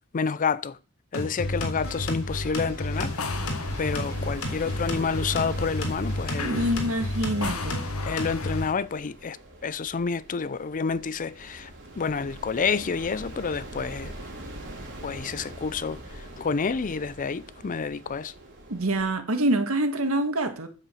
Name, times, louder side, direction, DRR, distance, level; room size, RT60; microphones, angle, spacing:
voice 1, 0.1-0.8 1.1-3.5 3.8-6.7 8.1-9.4 9.6-11.7 12.0-14.1 15.0-18.3, left 5 dB, 35° left, 0.5 m, -29 dB
sound 1, 1.1-8.7, left 1 dB, 65° left, 3.6 m, -31 dB
sound 2, 1.3-19.1, right 1 dB, 55° right, 3.7 m, -43 dB
sound 3, 2.9-8.7, left 4 dB, 90° left, 1.5 m, -38 dB
voice 2, 6.4-7.8 18.7-20.7, right 1 dB, 75° right, 1.9 m, -26 dB
9.7 x 7.5 x 7.7 m
head